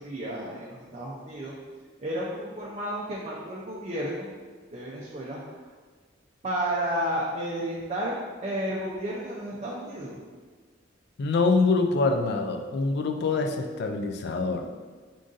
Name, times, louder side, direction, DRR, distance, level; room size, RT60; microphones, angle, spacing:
voice 1, 0.0-1.5 2.0-4.3 4.7-5.6 6.4-8.2 8.4-10.2, right 1 dB, 35° right, -5 dB, 0.5 m, -32 dB
voice 2, 11.2-14.6, left 3 dB, 55° left, 5 dB, 0.4 m, -25 dB
3.7 x 2.5 x 3.8 m, 1.4 s
head